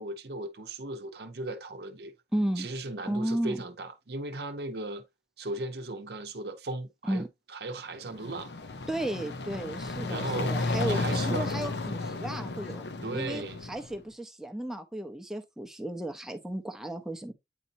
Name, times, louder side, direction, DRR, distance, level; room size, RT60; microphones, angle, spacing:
voice 1, 0.0-2.1 2.6-5.0 5.4-8.5 10.1-11.5 13.0-13.6, right 2 dB, 65° right, 0.7 m, -37 dB
voice 2, 2.3-2.7 3.0-3.6 7.1-7.3 8.9-17.3, right 1 dB, 5° right, 0.7 m, -34 dB
sound 1, 8.0-14.0, left 2 dB, 70° left, 0.7 m, -33 dB
8.5 x 4.0 x 2.7 m
head